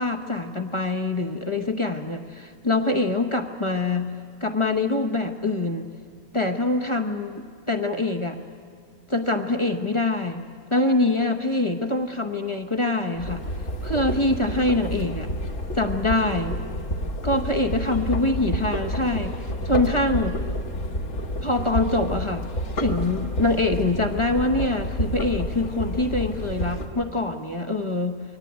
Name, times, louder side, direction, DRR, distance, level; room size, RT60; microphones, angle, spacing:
voice 1, 0.0-4.1 4.4-5.9 6.3-8.4 9.1-10.4 10.7-13.4 13.8-15.3 15.7-16.6 17.2-20.4 21.4-22.5 22.8-28.2, left 2 dB, 25° left, 5 dB, 0.9 m, -24 dB
sound 1, 13.1-26.9, equal, 65° left, 1.9 m, -29 dB
22.5 x 18.0 x 9.4 m, 2.2 s
omnidirectional pair, 1.5 m